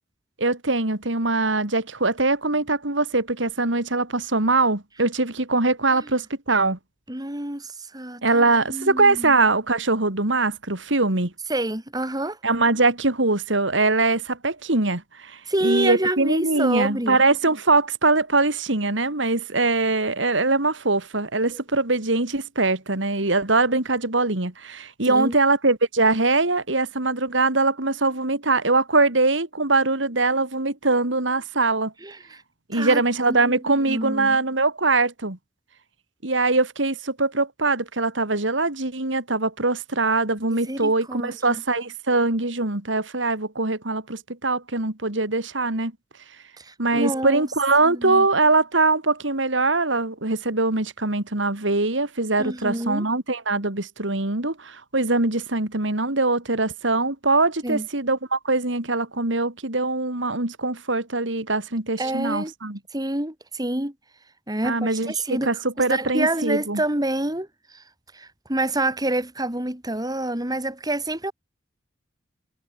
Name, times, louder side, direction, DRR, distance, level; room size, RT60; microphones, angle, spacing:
voice 1, 0.4-6.8 8.2-11.3 12.4-31.9 32.7-35.4 36.2-45.9 46.8-62.8 64.6-66.8, right 3 dB, 75° right, 3.1 m, -22 dB
voice 2, 7.1-9.3 11.5-12.4 15.5-17.2 25.1-25.3 32.0-32.4 32.7-33.0 33.3-33.6 33.9-34.4 40.5-41.6 46.6-47.4 47.8-48.3 52.4-53.0 57.6-57.9 62.0-62.5 62.9-63.9 64.5-65.5 65.9-67.5 67.7-67.8 68.1-71.3, right 1 dB, 20° right, 3.3 m, -27 dB
head